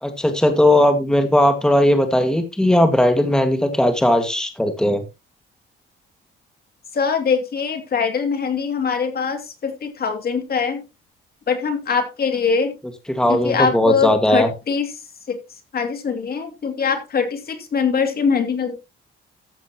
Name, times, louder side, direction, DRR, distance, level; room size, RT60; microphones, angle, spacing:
voice 1, 0.0-5.0 13.1-14.5, left 1 dB, 5° left, 7 dB, 1.9 m, -17 dB
voice 2, 6.9-10.8 11.5-12.7 13.3-14.9 15.3-15.4 15.7-18.8, left 5 dB, 50° left, 6 dB, 2.6 m, -22 dB
14.0 x 8.0 x 3.0 m, 0.26 s
cardioid pair, 90°, 20 cm